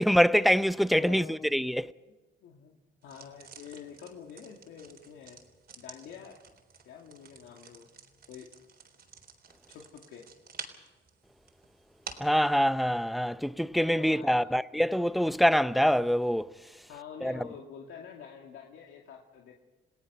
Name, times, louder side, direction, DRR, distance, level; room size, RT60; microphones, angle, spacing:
voice 1, 0.0-1.9 12.2-16.5 17.2-17.4, equal, ahead, 0.6 m, -25 dB
voice 2, 0.9-1.5 1.8-2.1 2.4-2.7 3.0-5.4 5.8-6.4 6.9-7.9 8.3-8.5 9.7-10.3 13.9-14.5 16.9-19.5, left 7 dB, 85° left, 2.3 m, -47 dB
sound 1, 3.0-12.4, right 6 dB, 55° right, 3.8 m, -50 dB
28.5 x 19.0 x 5.6 m
cardioid pair, 90°, 20 cm